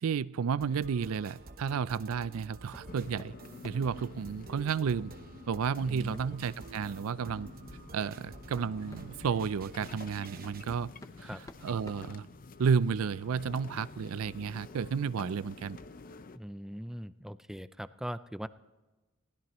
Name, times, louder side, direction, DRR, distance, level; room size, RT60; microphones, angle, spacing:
voice 1, 0.0-3.3 3.6-5.1 5.5-7.5 7.9-10.9 11.2-11.3 11.6-12.3 12.6-15.8, right 6 dB, 75° right, 19 dB, 0.4 m, -32 dB
sound 1, 0.6-10.8, right 2 dB, 45° right, 1.0 m, -50 dB
sound 2, 2.7-2.9 3.2-4.0 5.5-5.7 6.1-6.3 6.7-6.9 7.8-7.9 8.3-9.5 10.5-10.6 11.0-12.8, left 1 dB, 15° left, 0.8 m, -51 dB
sound 3, 2.9-16.4, left 3 dB, 40° left, 0.6 m, -49 dB
voice 2, 5.9-6.3 11.2-11.4 16.3-18.5, equal, ahead, 13 dB, 0.4 m, -41 dB
21.5 x 16.0 x 3.1 m, 1.2 s
head